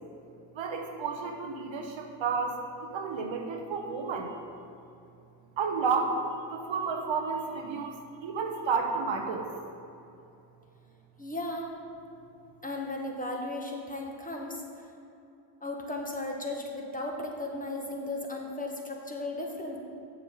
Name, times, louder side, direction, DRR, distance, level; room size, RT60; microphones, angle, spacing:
voice 1, 0.5-4.3 5.6-6.2 6.5-8.0 8.2-9.5, right 5 dB, 70° right, 3 dB, 1.0 m, -31 dB
voice 2, 11.2-11.7 12.6-14.6 15.6-19.8, left 2 dB, 15° left, 0 dB, 1.5 m, -35 dB
7.1 x 6.0 x 5.3 m, 2.7 s
supercardioid pair, 45°, 48 cm